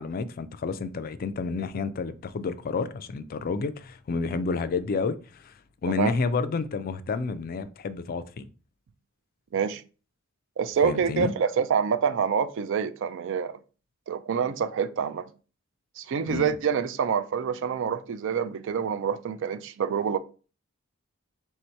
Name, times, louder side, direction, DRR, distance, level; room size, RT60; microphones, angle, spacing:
voice 1, 0.0-5.5 5.8-8.5 10.8-11.3 16.3-16.5, left 4 dB, 45° left, 0.3 m, -30 dB
voice 2, 10.6-13.6 14.1-15.3 16.0-20.2, right 7 dB, 60° right, 0.4 m, -26 dB
3.6 x 2.7 x 4.4 m
head